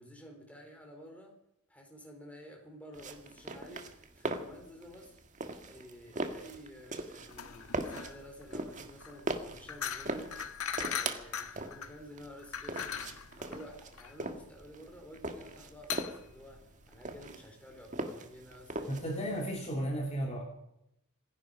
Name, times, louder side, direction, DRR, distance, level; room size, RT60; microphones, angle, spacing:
voice 1, 0.0-1.3 1.7-5.2 5.7-19.0, equal, 5° left, 1 dB, 4.1 m, -51 dB
sound 1, 2.9-19.6, right 2 dB, 35° right, 1.5 m, -40 dB
sound 2, 7.3-17.3, left 8 dB, 80° left, 1.4 m, -41 dB
voice 2, 18.9-20.4, right 1 dB, 30° left, 0 dB, 2.8 m, -34 dB
26.0 x 11.0 x 5.1 m, 0.80 s
head